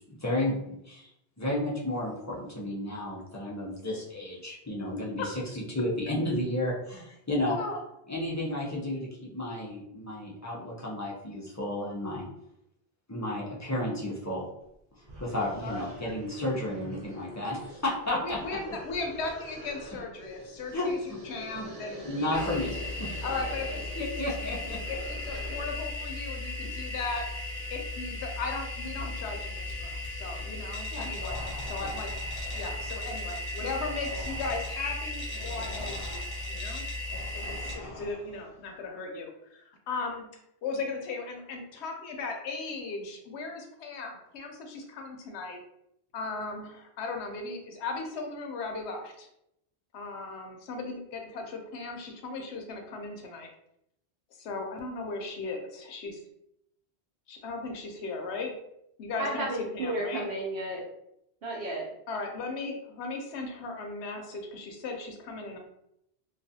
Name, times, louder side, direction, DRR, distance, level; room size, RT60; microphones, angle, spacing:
voice 1, 0.2-1.1 1.4-7.5 8.1-12.3 13.1-14.5 14.9-18.8 20.7-21.2 21.5-21.7 22.0-23.2 24.0-24.8 30.9-31.1 31.8-31.9, left 1 dB, 25° left, -5 dB, 0.3 m, -32 dB
voice 2, 7.5-7.8 15.6-15.8 18.1-22.7 23.2-24.2 24.9-27.2 27.7-31.4 31.7-32.1 32.5-36.8 37.3-40.3 40.6-45.6 46.1-49.3 49.9-53.5 54.4-56.2 57.3-58.5 59.0-60.2 62.1-65.6, left 3 dB, 80° left, 3 dB, 0.9 m, -37 dB
sound 1, 14.7-14.8 15.0-25.8, equal, 35° right, 0.6 m, -45 dB
sound 2, 22.3-37.8, left 2 dB, 50° left, 0.7 m, -36 dB
sound 3, 31.2-38.6, left 1 dB, 15° right, 1.0 m, -44 dB
voice 3, 59.2-60.8 61.4-61.9, right 1 dB, 70° right, -2 dB, 0.8 m, -32 dB
2.4 x 2.3 x 2.6 m, 0.79 s
omnidirectional pair, 1.1 m